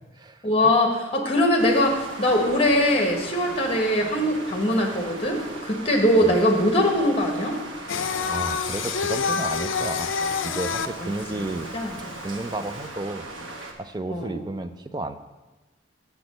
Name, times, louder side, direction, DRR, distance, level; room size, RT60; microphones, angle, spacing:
voice 1, 0.4-7.6 11.0-11.1 11.7-11.9 14.1-14.4, left 1 dB, 30° left, 2 dB, 1.3 m, -22 dB
sound 1, 1.6-13.7, right 2 dB, 75° right, 1.1 m, -38 dB
Singing, 7.9-12.8, left 6 dB, 75° left, 0.5 m, -28 dB
voice 2, 7.9-10.1 10.4-11.7 12.2-13.3 13.8-15.2, right 2 dB, 20° right, 9 dB, 0.3 m, -32 dB
7.1 x 6.1 x 6.4 m, 1.2 s
head